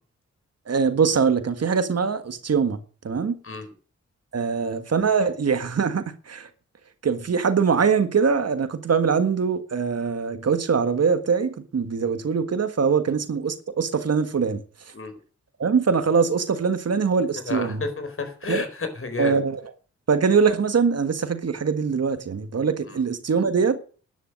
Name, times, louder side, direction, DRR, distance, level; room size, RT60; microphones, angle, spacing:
voice 1, 0.7-2.8 3.0-3.3 4.3-6.5 7.0-14.6 15.6-17.8 18.5-18.6 19.2-19.6 20.1-23.8, right 5 dB, 60° right, 1.6 m, -22 dB
voice 2, 17.5-19.4 22.9-23.0, left 3 dB, 45° left, 4.4 m, -31 dB
11.5 x 10.5 x 6.5 m
cardioid pair, 75°, 29 cm